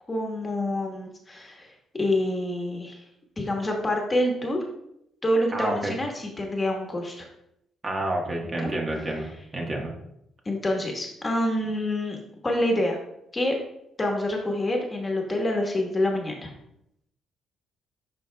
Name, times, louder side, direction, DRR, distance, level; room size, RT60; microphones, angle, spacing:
voice 1, 0.1-3.0 3.4-4.6 5.2-7.3 8.6-8.7 10.4-13.0 13.3-13.5 14.0-16.5, left 1 dB, 25° left, 1 dB, 1.3 m, -27 dB
voice 2, 5.5-5.9 7.8-9.9, right 1 dB, 35° right, 0 dB, 1.3 m, -29 dB
10.5 x 4.0 x 2.2 m, 0.79 s
cardioid pair, 90°, 0 cm